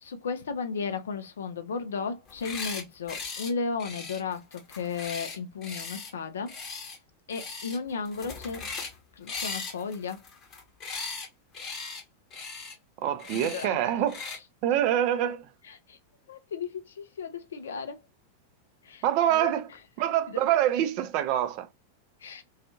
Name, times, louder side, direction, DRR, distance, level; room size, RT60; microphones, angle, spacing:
voice 1, 0.0-6.5 7.3-8.6 9.2-10.2 13.5-13.9 15.7-16.0 16.3-18.0 18.8-19.0 19.3-19.5 20.3-20.4 22.2-22.4, left 5 dB, 65° left, 0.4 m, -34 dB
sound 1, 2.3-2.8 3.1-3.5 3.8-6.1 6.5-7.0 7.3-7.8 8.0-9.0 9.3-11.3 11.5-12.0 12.3-12.7 13.2-13.7 14.1-14.4, left 4 dB, 30° left, 0.9 m, -38 dB
voice 2, 13.0-14.2 14.6-15.5 19.0-19.7 20.0-21.7, right 11 dB, 45° right, 0.4 m, -25 dB
2.5 x 2.3 x 2.7 m
figure-of-eight pair, 90°, 0 cm